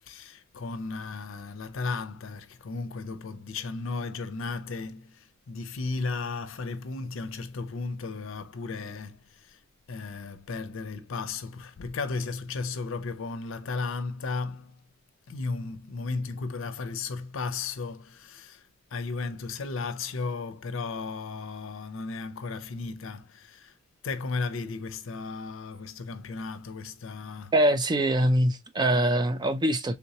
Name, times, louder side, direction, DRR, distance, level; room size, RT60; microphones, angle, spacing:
voice 1, 0.1-9.6 9.9-14.8 15.3-23.7 24.0-27.6, left 4 dB, 70° left, 0.5 m, -35 dB
voice 2, 27.5-29.9, right 1 dB, 20° right, 0.3 m, -23 dB
3.4 x 2.8 x 2.7 m
head